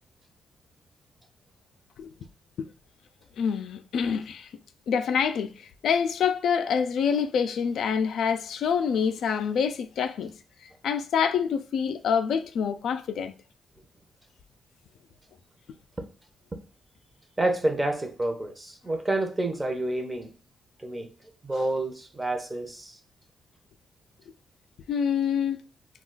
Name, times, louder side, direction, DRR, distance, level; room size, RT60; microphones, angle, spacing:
voice 1, 3.4-4.5 4.9-10.3 10.8-13.3 21.5-21.6 24.9-25.6, left 7 dB, 80° left, 0.3 m, -26 dB
voice 2, 17.4-20.3 20.8-21.1 21.4-23.0, right 2 dB, 20° right, 0.6 m, -28 dB
2.3 x 2.3 x 3.7 m
cardioid pair, 100°, 0 cm